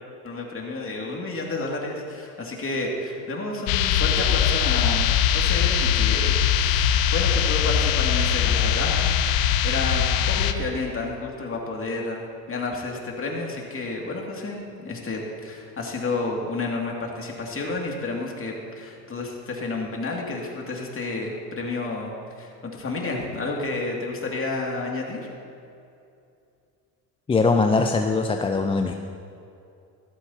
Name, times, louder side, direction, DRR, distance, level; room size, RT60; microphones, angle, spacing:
voice 1, 0.2-9.3 9.6-12.2 12.5-25.3, left 3 dB, 30° left, -1 dB, 2.4 m, -31 dB
sound 1, 3.7-10.5, left 9 dB, 70° left, 0.9 m, -21 dB
voice 2, 27.3-28.9, left 3 dB, 15° left, 5 dB, 0.4 m, -21 dB
14.5 x 13.0 x 2.8 m, 2.6 s
supercardioid pair, 85°, 46 cm